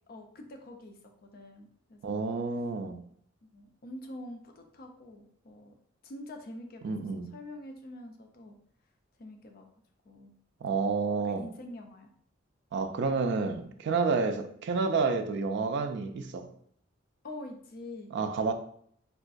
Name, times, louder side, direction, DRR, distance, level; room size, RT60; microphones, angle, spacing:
voice 1, 0.1-2.3 3.4-5.7 6.0-6.9 7.3-8.5 9.2-9.7 10.0-10.3 11.2-12.1 14.3-14.5 17.2-18.1, left 1 dB, 50° left, 0.4 m, -45 dB
voice 2, 2.0-3.0 6.8-7.3 10.6-11.4 12.7-16.5 18.1-18.5, right 4 dB, 60° right, 0.3 m, -29 dB
3.6 x 2.3 x 2.5 m
head